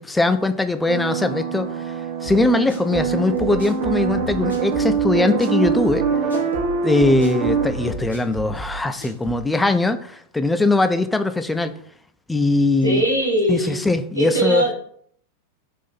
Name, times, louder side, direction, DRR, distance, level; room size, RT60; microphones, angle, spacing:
voice 1, 0.0-1.8 2.2-6.1 6.8-11.7 12.3-13.0 13.5-14.7, left 2 dB, 10° left, 9 dB, 0.3 m, -20 dB
sound 1, 0.9-7.9, right 6 dB, 55° right, 0.8 m, -24 dB
sound 2, 2.2-9.5, right 1 dB, 80° left, 1.0 m, -34 dB
voice 2, 12.8-13.8 14.1-14.7, right 1 dB, 85° right, -2 dB, 1.1 m, -20 dB
3.5 x 2.6 x 4.3 m, 0.62 s
figure-of-eight pair, 90°, 0 cm